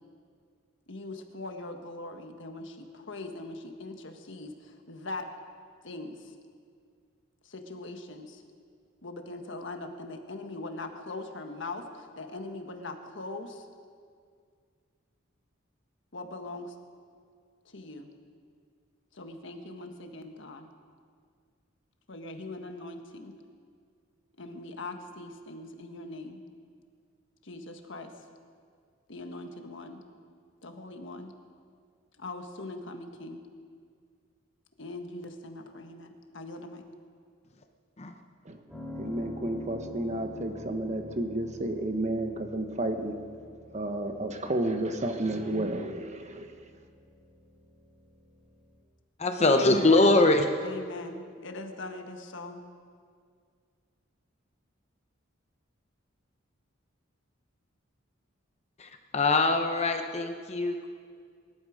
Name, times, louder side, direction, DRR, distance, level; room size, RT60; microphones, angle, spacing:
voice 1, 0.9-5.3 5.8-6.3 7.4-8.4 9.0-13.7 16.1-16.7 17.6-18.1 19.1-20.7 22.1-23.3 24.4-26.4 27.4-28.1 29.1-30.0 30.6-31.3 32.2-33.4 34.8-36.8 49.4-50.2 50.6-52.6, left 2 dB, 65° left, 5 dB, 1.5 m, -41 dB
Piano, 38.7-48.8, left 2 dB, 5° right, 3.8 m, -47 dB
voice 2, 39.0-43.1 43.7-46.5, right 1 dB, 35° right, 6 dB, 1.2 m, -31 dB
voice 3, 49.2-50.4 58.8-60.9, left 2 dB, 35° left, 5 dB, 0.8 m, -23 dB
24.0 x 12.0 x 5.1 m, 2.1 s
head